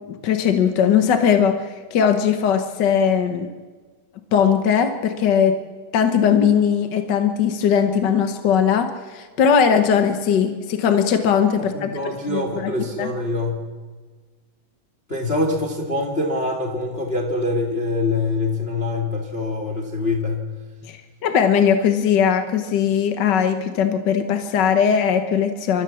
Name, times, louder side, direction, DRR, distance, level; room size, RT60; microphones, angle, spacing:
voice 1, 0.1-3.5 4.3-5.6 5.9-11.9 12.3-13.1 20.8-25.8, left 7 dB, 60° left, 7 dB, 1.2 m, -19 dB
voice 2, 11.6-13.6 15.1-20.5, left 2 dB, 25° left, 1 dB, 2.0 m, -24 dB
28.0 x 13.5 x 7.1 m, 1.4 s
omnidirectional pair, 3.4 m